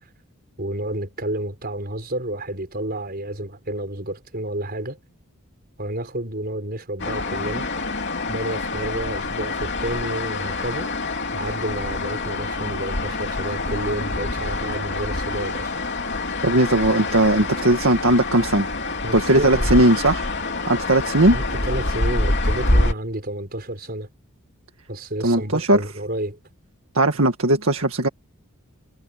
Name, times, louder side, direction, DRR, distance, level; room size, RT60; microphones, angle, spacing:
voice 1, 0.6-5.0 5.8-7.7 8.3-10.9 11.3-15.7 19.0-19.7 21.3-24.1 24.9-26.4, right 1 dB, 45° right, 5.4 m, -30 dB
sound 1, 7.0-22.9, left 2 dB, 50° left, 3.3 m, -26 dB
voice 2, 16.4-18.7 19.1-20.3 20.7-21.4 25.2-25.8 26.9-28.1, right 1 dB, 70° right, 1.9 m, -18 dB
head